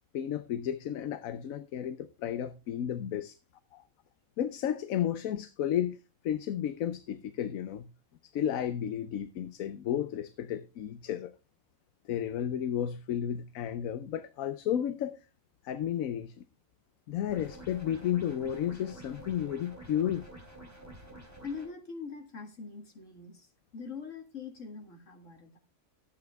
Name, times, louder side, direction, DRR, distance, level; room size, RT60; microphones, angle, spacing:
voice 1, 0.1-3.4 3.7-3.8 4.4-6.0 6.2-7.9 8.3-11.3 12.1-15.2 15.6-16.4 17.1-20.3, left 10 dB, 80° left, 1.1 m, -32 dB
sound 1, 17.3-21.7, right 1 dB, 10° right, 3.8 m, -49 dB
voice 2, 21.4-25.6, left 5 dB, 65° left, 2.3 m, -43 dB
13.0 x 8.6 x 3.4 m
omnidirectional pair, 1.4 m